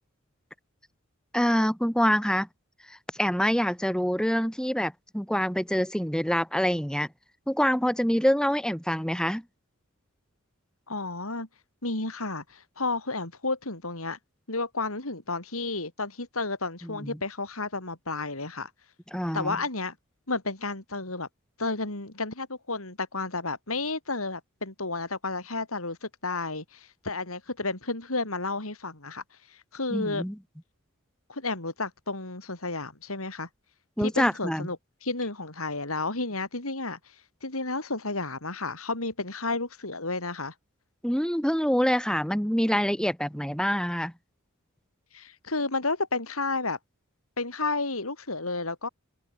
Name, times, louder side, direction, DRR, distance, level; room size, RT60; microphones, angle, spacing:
voice 1, 1.3-2.5 3.2-7.1 7.5-9.4 16.8-17.2 19.1-19.6 29.9-30.4 34.0-34.7 41.0-44.1, equal, 5° left, 6.1 m, -26 dB
voice 2, 10.9-11.5 11.8-14.2 14.5-18.7 19.3-20.0 20.3-21.3 21.6-29.2 29.5-30.2 31.3-33.5 34.0-37.0 37.4-40.5 45.1-46.8 47.4-48.9, left 3 dB, 80° left, 5.2 m, -32 dB
head